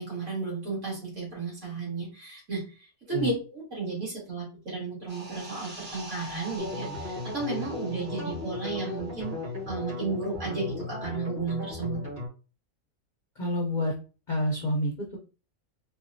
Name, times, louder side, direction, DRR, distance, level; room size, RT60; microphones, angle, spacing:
voice 1, 0.0-9.4 9.7-12.0, right 4 dB, 60° right, -5 dB, 2.3 m, -33 dB
sound 1, 5.1-10.2 10.4-10.6, right 2 dB, 30° right, 0.8 m, -44 dB
sound 2, 6.6-12.3, left 3 dB, 45° right, 2.1 m, -36 dB
voice 2, 13.4-13.9 14.3-15.2, left 1 dB, 50° left, -1 dB, 0.6 m, -28 dB
4.4 x 2.2 x 2.6 m, 0.34 s
omnidirectional pair, 1.4 m